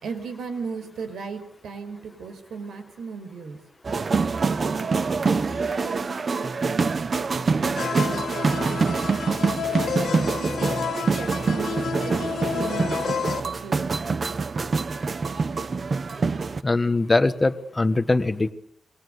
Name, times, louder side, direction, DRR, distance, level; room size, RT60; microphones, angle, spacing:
voice 1, 0.0-3.6 4.5-9.1 9.9-14.0, right 5 dB, 80° right, 9 dB, 5.2 m, -37 dB
sound 1, 3.8-16.6, right 4 dB, 35° right, 1.0 m, -25 dB
sound 2, 7.8-13.4, left 7 dB, 60° left, 2.1 m, -30 dB
voice 2, 16.6-18.5, left 2 dB, 15° left, 10 dB, 1.3 m, -21 dB
27.5 x 22.5 x 8.1 m, 0.71 s
wide cardioid pair, 165°, 0 cm